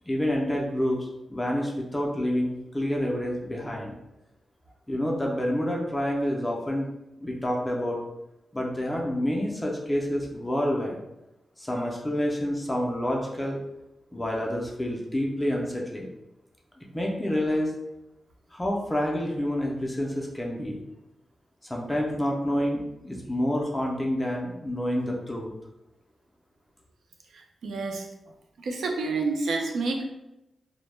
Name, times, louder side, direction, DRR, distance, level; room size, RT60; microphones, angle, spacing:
voice 1, 0.1-3.9 4.9-6.9 7.2-8.0 8.5-11.0 11.6-13.6 14.1-16.1 16.8-17.7 18.5-20.8 21.6-25.5, equal, 10° left, -2 dB, 0.3 m, -28 dB
voice 2, 27.3-28.1 28.6-30.0, right 3 dB, 85° right, 3 dB, 0.4 m, -29 dB
2.0 x 2.0 x 3.1 m, 0.91 s
wide cardioid pair, 155°, 0 cm